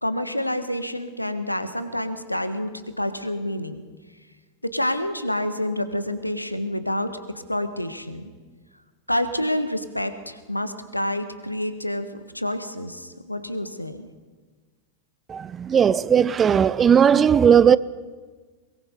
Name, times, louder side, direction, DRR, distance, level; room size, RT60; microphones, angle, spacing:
voice 1, 0.0-3.8 4.7-8.2 9.1-14.1, left 1 dB, 85° left, 1.4 m, -28 dB
voice 2, 15.3-17.8, right 8 dB, 20° right, 0.5 m, -17 dB
22.0 x 22.0 x 5.3 m
figure-of-eight pair, 90°, 0 cm